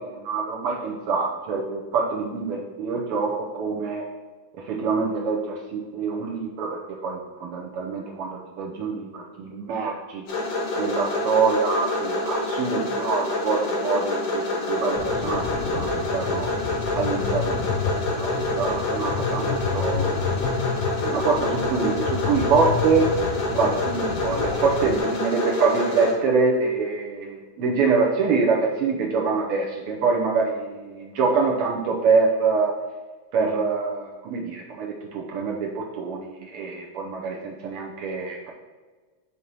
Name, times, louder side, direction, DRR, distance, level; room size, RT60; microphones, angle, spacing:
voice 1, 0.0-4.1 4.6-10.3 10.8-16.5 16.9-17.8 18.2-20.4 21.0-23.1 23.5-32.8 33.3-38.5, right 4 dB, 75° right, -2 dB, 1.3 m, -25 dB
sound 1, 10.3-26.1, left 2 dB, 60° left, 1.2 m, -27 dB
sound 2, 15.0-25.0, left 6 dB, 85° left, 1.3 m, -30 dB
6.5 x 2.9 x 5.3 m, 1.3 s
omnidirectional pair, 3.3 m